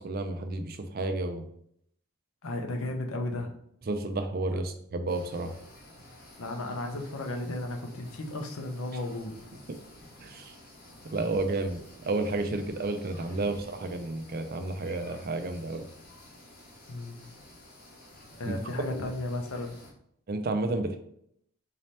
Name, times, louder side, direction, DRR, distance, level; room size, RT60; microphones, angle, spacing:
voice 1, 0.0-1.4 3.9-5.5 9.7-9.8 10.2-10.5 11.0-15.8 18.5-18.6 20.3-21.0, right 2 dB, 40° right, 7 dB, 0.4 m, -31 dB
voice 2, 2.4-3.5 6.4-9.3 16.9-17.3 18.4-19.8, left 2 dB, 70° left, 3 dB, 0.7 m, -34 dB
sound 1, 5.1-19.9, left 1 dB, 40° left, 1.0 m, -51 dB
4.1 x 2.8 x 3.2 m, 0.70 s
head